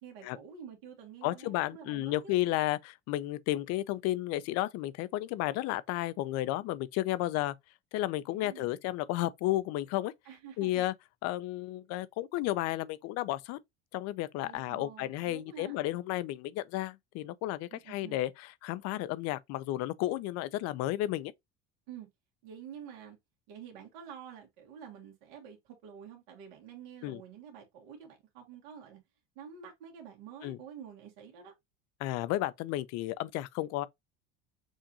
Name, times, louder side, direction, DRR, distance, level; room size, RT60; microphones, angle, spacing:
voice 1, 0.0-2.3 8.3-8.7 10.2-10.9 14.4-15.8 17.7-18.2 21.9-22.1 22.4-23.2 23.5-29.0 29.3-31.5, right 8 dB, 75° right, 1.7 m, -49 dB
voice 2, 1.2-7.5 7.9-10.1 10.6-10.9 11.2-13.6 13.9-21.3 27.0-27.2 30.4-30.6 32.0-33.9, left 15 dB, 60° left, 0.6 m, -32 dB
6.3 x 2.6 x 2.9 m
supercardioid pair, 120°, 29 cm